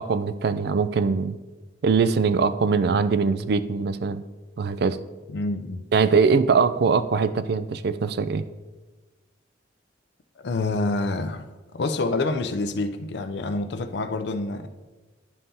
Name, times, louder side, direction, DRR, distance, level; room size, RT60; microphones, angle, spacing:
voice 1, 0.0-1.4 1.8-4.2 4.6-5.0 5.9-8.4, right 5 dB, 55° right, 13 dB, 0.3 m, -22 dB
voice 2, 5.3-5.8 10.4-11.4 11.7-14.7, left 2 dB, 60° left, 8 dB, 0.4 m, -27 dB
11.0 x 5.5 x 2.7 m, 1.3 s
head